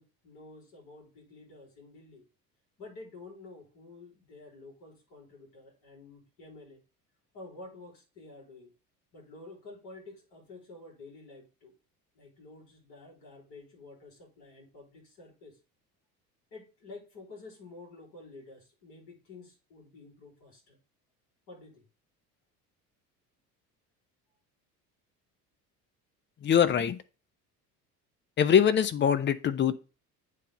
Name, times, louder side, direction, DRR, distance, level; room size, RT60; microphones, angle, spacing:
voice 1, 0.0-2.3 2.8-6.8 7.3-8.7 9.1-11.7 12.1-15.6 16.5-20.8 21.5-21.9, left 3 dB, 50° left, -1 dB, 3.7 m, -50 dB
voice 2, 26.4-27.0 28.4-29.7, left 8 dB, 25° left, 11 dB, 0.6 m, -23 dB
8.3 x 3.4 x 5.3 m, 0.33 s
figure-of-eight pair, 60°, 48 cm